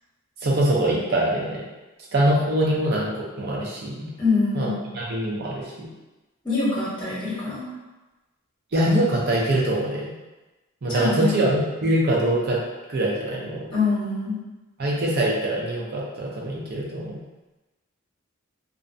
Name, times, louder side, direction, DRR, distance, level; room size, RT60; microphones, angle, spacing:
voice 1, 0.4-1.6 2.1-4.1 4.5-5.9 8.7-10.1 10.8-12.6 12.9-13.7 14.8-17.2, right 1 dB, 50° right, -3 dB, 0.5 m, -23 dB
voice 2, 4.2-4.8 6.4-7.7 10.9-11.4 13.7-14.4, left 3 dB, 20° left, -10 dB, 1.1 m, -24 dB
2.5 x 2.1 x 2.5 m, 1.1 s
head